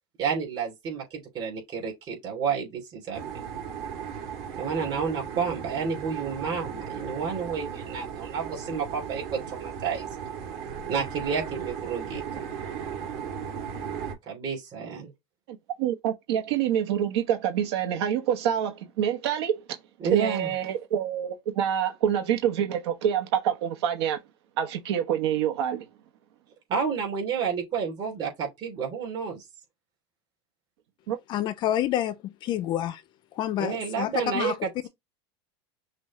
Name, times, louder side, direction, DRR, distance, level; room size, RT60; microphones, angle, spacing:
voice 1, 0.2-3.5 4.5-10.1 10.9-12.4 14.3-15.1 20.0-20.5 26.7-29.4 33.6-34.5, right 6 dB, 35° right, 3.0 m, -30 dB
sound 1, 3.1-14.1, right 7 dB, 55° right, 2.5 m, -36 dB
voice 2, 15.5-19.6 20.1-24.2 24.6-25.8 31.1-31.2, right 9 dB, 85° right, 1.0 m, -26 dB
voice 3, 31.3-33.0 33.3-34.6, left 11 dB, 35° left, 0.4 m, -28 dB
6.1 x 2.3 x 3.0 m
supercardioid pair, 155°, 14 cm